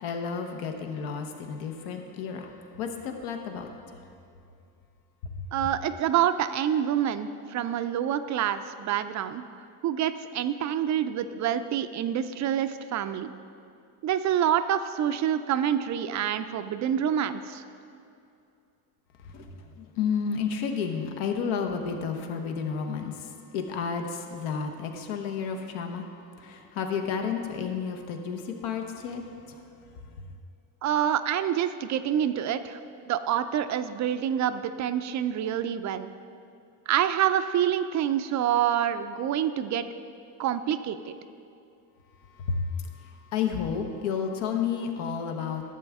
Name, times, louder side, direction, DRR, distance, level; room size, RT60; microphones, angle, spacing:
voice 1, 0.0-2.5 2.8-3.7 5.4-5.5 19.3-19.5 19.8-23.3 23.5-26.0 26.4-29.2 42.4-42.6 43.3-45.6, left 6 dB, 75° left, 4 dB, 1.1 m, -31 dB
voice 2, 5.5-9.4 9.8-13.3 14.0-17.6 30.8-32.8 33.1-36.1 36.9-39.8 40.4-41.1, right 10 dB, 40° right, 10 dB, 0.4 m, -27 dB
12.0 x 7.6 x 3.5 m, 2.5 s
supercardioid pair, 90°, 49 cm